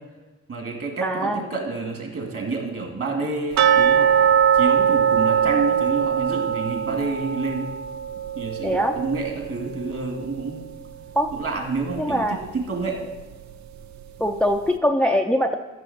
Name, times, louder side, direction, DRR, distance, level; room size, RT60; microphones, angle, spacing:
voice 1, 0.5-4.3 4.5-7.7 8.4-10.6 11.3-13.0, right 3 dB, 50° right, 2 dB, 2.3 m, -28 dB
voice 2, 1.0-1.4 8.6-9.0 11.2-11.3 12.0-12.4 14.2-15.5, equal, 5° left, 4 dB, 0.5 m, -22 dB
sound 1, 3.6-10.4 10.7-10.8 11.3-11.4 12.0-12.1, right 8 dB, 70° right, 0.7 m, -21 dB
13.0 x 6.1 x 4.3 m, 1.2 s
cardioid pair, 90°, 30 cm